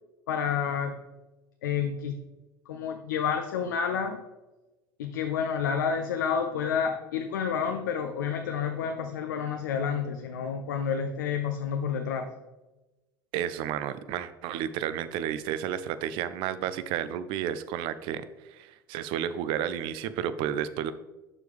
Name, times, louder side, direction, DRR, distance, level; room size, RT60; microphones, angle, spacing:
voice 1, 0.3-1.0 1.6-2.2 2.7-4.2 5.0-12.3, left 7 dB, 65° left, 6 dB, 0.6 m, -29 dB
voice 2, 13.3-20.9, right 9 dB, 50° right, 14 dB, 0.5 m, -32 dB
12.0 x 4.6 x 3.4 m, 1.1 s
figure-of-eight pair, 70°, 11 cm